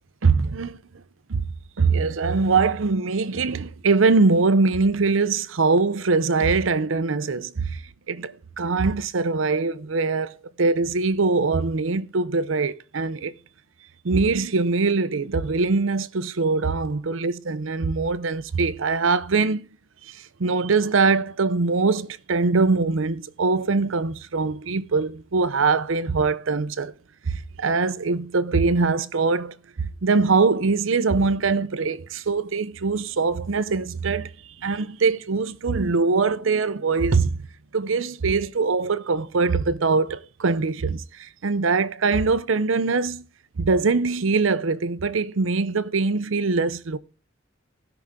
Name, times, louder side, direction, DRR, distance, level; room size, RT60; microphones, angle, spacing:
voice 1, 0.2-0.8 1.3-1.4 1.8-7.8 8.1-13.3 14.0-19.6 20.1-26.9 27.3-34.3 34.6-37.4 37.7-43.2 43.6-47.0, right 4 dB, 70° right, 0.7 m, -22 dB
16.5 x 5.9 x 3.7 m
head